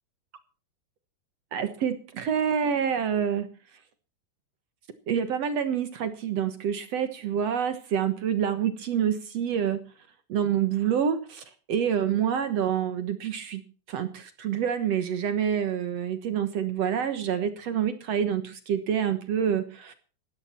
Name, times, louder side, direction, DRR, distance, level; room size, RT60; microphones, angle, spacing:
voice 1, 1.5-3.5 5.1-9.8 10.3-13.6 13.9-19.9, right 8 dB, 65° right, 10 dB, 1.6 m, -27 dB
17.0 x 13.5 x 4.4 m, 0.37 s
omnidirectional pair, 4.7 m